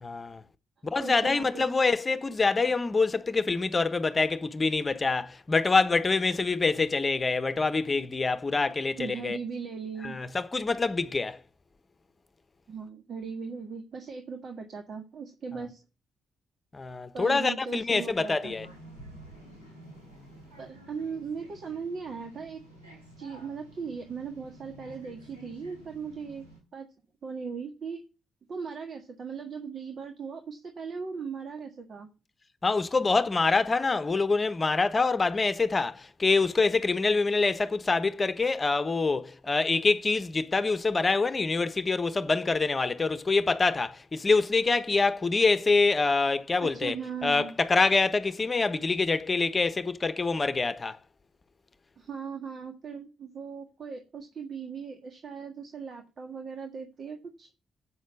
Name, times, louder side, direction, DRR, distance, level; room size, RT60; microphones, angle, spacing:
voice 1, 0.0-0.4 0.8-9.4 10.0-11.4 16.7-18.7 32.6-46.9 47.2-51.0, left 3 dB, 35° left, 1.0 m, -25 dB
voice 2, 1.0-1.7 9.0-10.2 12.7-15.8 17.1-18.5 20.6-22.6 23.2-26.9 27.2-28.0 28.5-32.1 46.6-47.5 52.0-57.5, right 5 dB, 55° right, 1.6 m, -38 dB
sound 1, 18.4-26.6, right 1 dB, 90° right, 4.1 m, -50 dB
8.7 x 6.4 x 7.0 m
hypercardioid pair, 40°, 0 cm